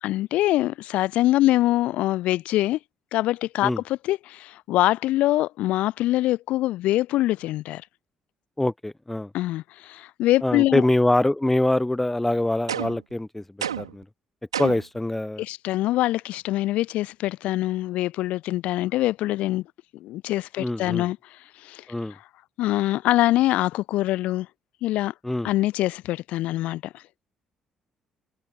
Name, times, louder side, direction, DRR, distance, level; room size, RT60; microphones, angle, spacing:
voice 1, 0.0-2.8 3.1-7.8 9.3-10.8 15.4-19.6 19.9-21.2 21.6-21.8 22.6-24.5 24.8-25.1 25.4-27.0, left 16 dB, 60° left, 0.5 m, -24 dB
voice 2, 8.6-9.3 10.4-13.4 13.8-14.0 14.6-15.4 20.6-21.1 21.9-22.1 25.2-25.5, left 1 dB, 10° left, 0.7 m, -24 dB
sound 1, 12.7-13.1 13.6-14.0 14.5-15.0, right 9 dB, 80° right, 0.5 m, -30 dB
figure-of-eight pair, 45°, 3 cm